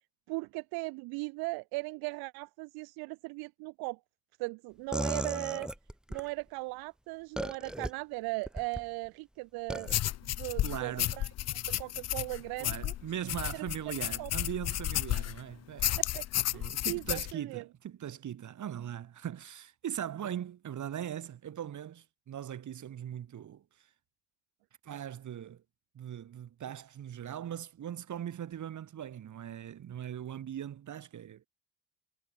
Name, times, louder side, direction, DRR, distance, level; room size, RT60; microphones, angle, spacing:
voice 1, 0.3-4.0 4.4-5.7 6.1-11.3 11.7-12.9 14.2-14.3 16.0-16.2 16.5-17.6, right 26 dB, 80° right, 1.5 m, -38 dB
sound 1, 4.9-6.3 7.4-7.9 8.5-8.8 9.7-10.0, equal, ahead, 1.5 m, -35 dB
sound 2, 9.9-15.4 15.8-17.3, left 13 dB, 45° left, 0.6 m, -32 dB
voice 2, 10.6-11.2 12.6-15.9 16.5-23.6 24.8-25.6 25.9-31.5, right 10 dB, 55° right, 5.0 m, -40 dB
supercardioid pair, 75°, 36 cm